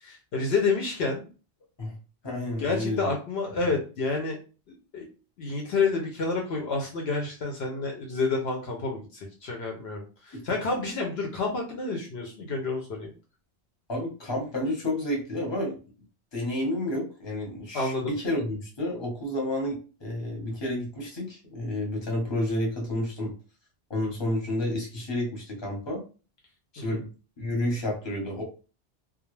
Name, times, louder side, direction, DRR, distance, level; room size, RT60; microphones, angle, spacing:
voice 1, 0.0-1.3 2.6-4.4 4.7-5.1 5.4-13.1 17.7-18.1 26.8-27.0, left 4 dB, 70° left, 1 dB, 0.8 m, -29 dB
voice 2, 2.2-3.1 10.3-10.6 13.9-15.8 16.3-23.3 23.9-26.0 26.7-27.1 27.4-28.4, left 1 dB, 25° left, -1 dB, 0.9 m, -30 dB
2.3 x 2.0 x 3.0 m, 0.35 s
omnidirectional pair, 1.2 m